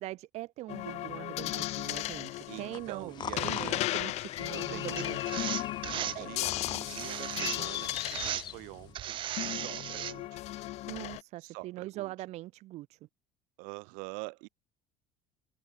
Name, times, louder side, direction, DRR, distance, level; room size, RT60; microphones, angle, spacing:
voice 1, 0.0-5.5 5.8-6.4 10.9-13.0, right 17 dB, 55° right, 0.9 m, -42 dB
sound 1, 0.7-8.6 9.4-11.2, left 17 dB, 60° left, 1.2 m, -36 dB
voice 2, 2.5-3.7 4.5-5.0 5.9-10.4 11.4-12.1 13.6-14.5, right 33 dB, 80° right, 6.7 m, -45 dB
sound 2, 2.7-8.9, left 9 dB, 35° left, 0.9 m, -41 dB
sound 3, 5.0-6.2 6.9-7.8 8.1-8.5 8.9-10.1, right 12 dB, 40° right, 0.5 m, -36 dB
open air
cardioid pair, 135°, 13 cm